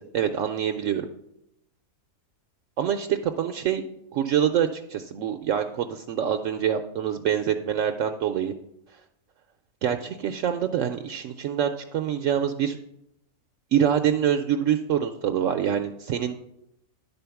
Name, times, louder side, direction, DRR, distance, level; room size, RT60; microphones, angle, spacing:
voice 1, 0.1-1.1 2.8-3.8 4.1-8.5 9.8-12.8 13.7-16.4, right 9 dB, 70° right, 6 dB, 0.9 m, -25 dB
11.5 x 4.0 x 6.9 m, 0.83 s
omnidirectional pair, 1.5 m